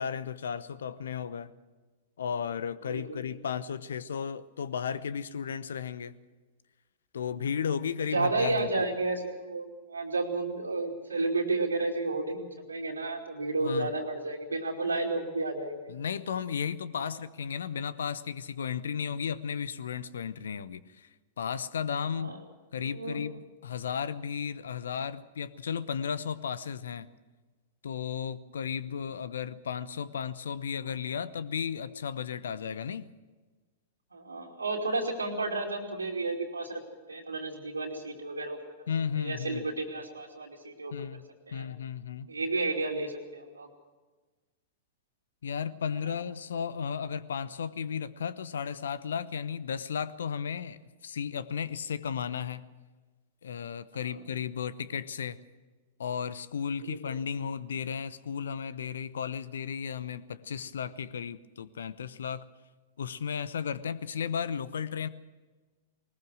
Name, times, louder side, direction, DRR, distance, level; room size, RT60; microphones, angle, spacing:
voice 1, 0.0-1.5 2.2-6.1 7.1-8.9 13.6-13.9 15.9-21.1 21.4-22.3 22.7-27.1 27.8-33.1 38.9-39.7 40.9-42.3 45.4-52.6 53.4-55.4 56.0-62.5 63.0-65.1, left 7 dB, 65° left, 17 dB, 0.8 m, -34 dB
voice 2, 2.9-3.3 8.1-15.9 17.0-17.1 22.2-22.4 22.8-23.2 34.1-36.8 37.1-38.6 39.2-40.9 41.5-41.6 42.3-43.7 54.1-54.2 56.8-57.0, right 3 dB, 80° right, -2 dB, 2.8 m, -32 dB
20.5 x 20.0 x 6.3 m, 1.3 s
figure-of-eight pair, 100°, 0 cm